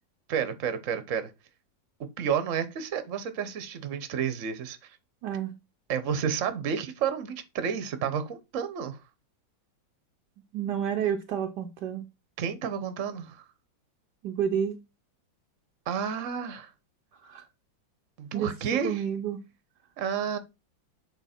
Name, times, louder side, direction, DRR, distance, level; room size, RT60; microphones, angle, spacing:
voice 1, 0.3-1.3 2.2-4.8 5.9-9.0 12.4-13.4 15.9-16.7 18.2-19.0 20.0-20.4, right 7 dB, 50° right, 1.2 m, -30 dB
voice 2, 5.2-5.5 10.5-12.0 14.2-14.8 17.2-17.5 18.3-19.4, right 8 dB, 70° right, 1.2 m, -30 dB
8.0 x 3.8 x 4.3 m
omnidirectional pair, 2.1 m